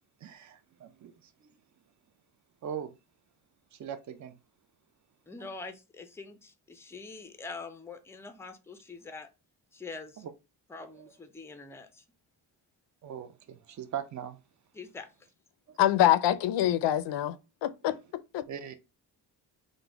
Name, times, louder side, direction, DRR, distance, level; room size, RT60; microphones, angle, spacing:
voice 1, 0.2-1.5 2.6-2.9 3.7-4.4 10.2-10.3 10.9-11.1 13.0-14.4 15.7-15.8 18.5-18.7, right 9 dB, 45° right, 0.6 m, -40 dB
voice 2, 5.3-9.3 9.7-10.2 10.7-12.0 14.7-15.1, left 4 dB, 5° left, 0.4 m, -44 dB
voice 3, 15.8-17.4 17.6-18.0 18.3-18.4, left 12 dB, 85° left, 0.5 m, -24 dB
3.8 x 2.1 x 4.5 m
wide cardioid pair, 150°, 42 cm